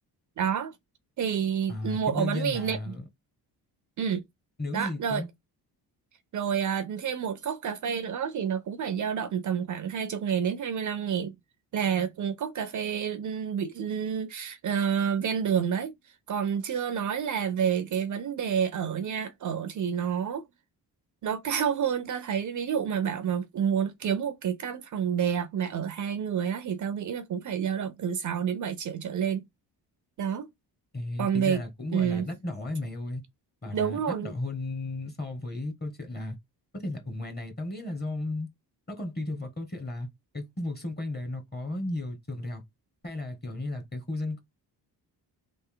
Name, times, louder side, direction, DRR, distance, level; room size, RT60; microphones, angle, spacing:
voice 1, 0.4-0.7 1.2-3.0 4.0-4.2 4.7-5.2 6.3-11.3 11.7-15.9 16.3-20.4 21.2-29.4 30.2-30.5 31.2-31.6 31.9-32.3 33.7-34.3, right 8 dB, 50° right, 0.5 m, -29 dB
voice 2, 1.7-3.0 4.6-5.3 30.9-33.2 33.6-36.4 36.7-38.5 38.9-40.1 40.3-42.6 43.0-44.4, left 2 dB, 25° left, 1.1 m, -34 dB
3.3 x 2.5 x 3.7 m
cardioid pair, 110°, 40 cm